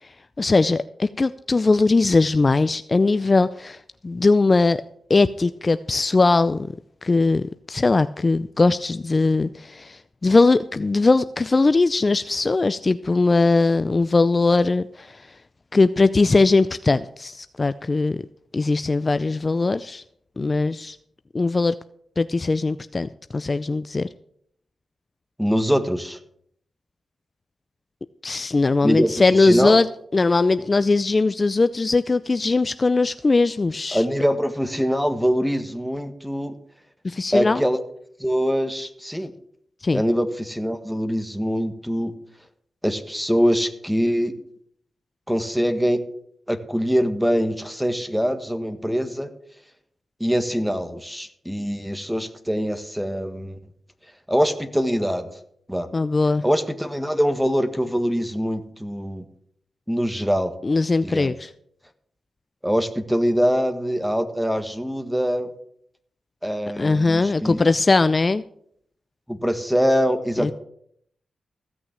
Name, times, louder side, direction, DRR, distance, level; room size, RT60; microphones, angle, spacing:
voice 1, 0.4-4.8 5.1-6.7 7.0-15.2 15.7-18.2 18.5-20.0 20.4-21.0 21.3-21.8 22.2-24.1 28.2-29.9 30.1-34.0 37.0-37.6 39.8-40.0 55.9-56.4 60.6-61.5 66.8-68.4 70.4-70.5, left 3 dB, 40° left, 13 dB, 0.5 m, -20 dB
voice 2, 25.4-26.2 28.8-29.8 33.9-36.5 37.3-37.8 38.2-39.3 39.9-42.1 42.8-44.3 45.3-46.0 46.5-49.3 50.2-53.6 54.3-55.3 55.7-55.9 56.4-59.2 59.9-60.5 61.0-61.3 62.6-65.5 66.4-67.6 69.3-70.5, equal, 5° right, 9 dB, 1.5 m, -23 dB
16.0 x 6.2 x 7.4 m, 0.68 s
cardioid pair, 50°, 0 cm